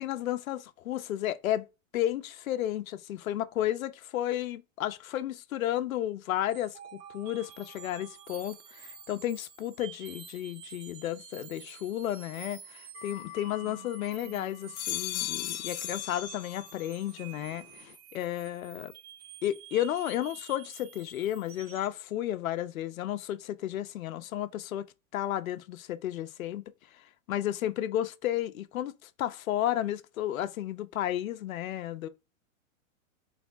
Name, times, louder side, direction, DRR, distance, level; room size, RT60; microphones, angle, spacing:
voice 1, 0.0-1.7 1.9-18.9 19.4-24.9 25.1-26.6 26.9-27.0 27.3-32.1, left 12 dB, 80° left, 0.9 m, -33 dB
sound 1, 6.5-22.0, right 9 dB, 30° right, 0.6 m, -50 dB
sound 2, 13.0-14.1 14.5-17.0 17.3-17.9, left 12 dB, 35° left, 0.4 m, -38 dB
8.4 x 3.5 x 3.5 m
supercardioid pair, 170°, 41 cm